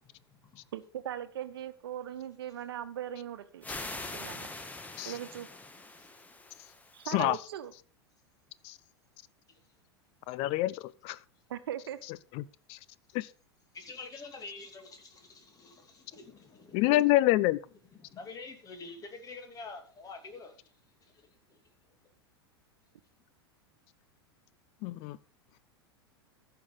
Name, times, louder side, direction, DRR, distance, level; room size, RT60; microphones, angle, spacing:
voice 1, 0.7-3.6 4.1-4.5 5.0-5.5 6.9-7.7 11.5-12.0, right 10 dB, 65° right, 1.2 m, -39 dB
sound 1, 3.6-7.3, left 2 dB, 10° left, 1.3 m, -43 dB
voice 2, 10.3-11.2 12.4-12.5 12.7-12.8 13.1-13.3 16.7-17.6 24.8-25.2, left 17 dB, 45° left, 0.6 m, -26 dB
voice 3, 13.7-17.1 17.9-20.6 21.0-21.2, left 3 dB, 25° left, 2.7 m, -46 dB
14.5 x 5.9 x 5.3 m
figure-of-eight pair, 90°, 13 cm